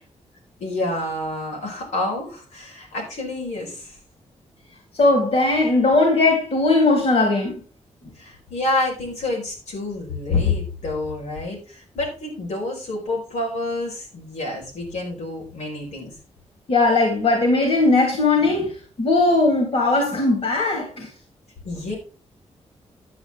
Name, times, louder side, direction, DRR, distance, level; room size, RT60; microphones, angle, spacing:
voice 1, 0.6-3.9 8.2-16.1 21.6-22.0, left 2 dB, 85° left, 4.9 m, -28 dB
voice 2, 4.9-7.6 16.7-18.7 19.0-21.1, left 2 dB, 55° left, 3.3 m, -18 dB
10.5 x 8.1 x 3.6 m
wide cardioid pair, 115°, 12 cm